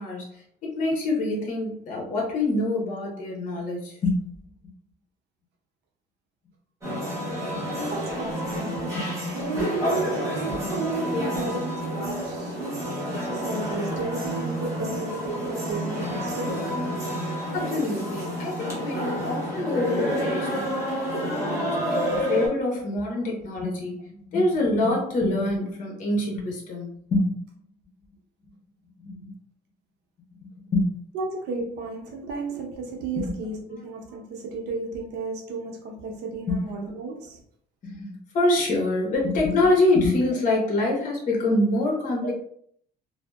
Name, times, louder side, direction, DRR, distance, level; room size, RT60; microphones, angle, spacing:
voice 1, 0.0-4.2 7.5-7.7 8.9-9.2 9.5-9.6 17.5-20.8 21.3-27.4 29.0-29.3 30.7-30.9 33.2-33.3 36.5-36.6 37.8-42.3, left 2 dB, 50° left, -1 dB, 0.8 m, -26 dB
sound 1, 6.8-22.5, equal, 20° right, 1.1 m, -29 dB
voice 2, 7.9-16.6 20.3-20.4 31.1-37.4, right 3 dB, 85° right, 1 dB, 0.7 m, -33 dB
2.6 x 2.0 x 2.2 m, 0.63 s
cardioid pair, 110°, 17 cm